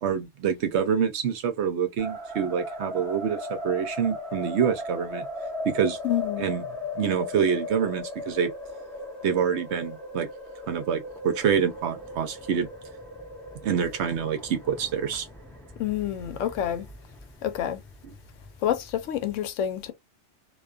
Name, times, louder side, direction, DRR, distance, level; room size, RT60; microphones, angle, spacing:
voice 1, 0.0-5.2 5.6-6.0 6.4-6.6 7.0-8.5 9.2-10.3 10.7-12.7 13.6-15.3, right 7 dB, 70° right, 0.8 m, -26 dB
sound 1, 2.0-19.4, left 1 dB, 5° left, 0.7 m, -38 dB
voice 2, 6.0-6.5 15.8-16.9 17.4-17.8 18.6-19.9, left 11 dB, 80° left, 0.9 m, -28 dB
2.4 x 2.3 x 2.3 m
omnidirectional pair, 1.3 m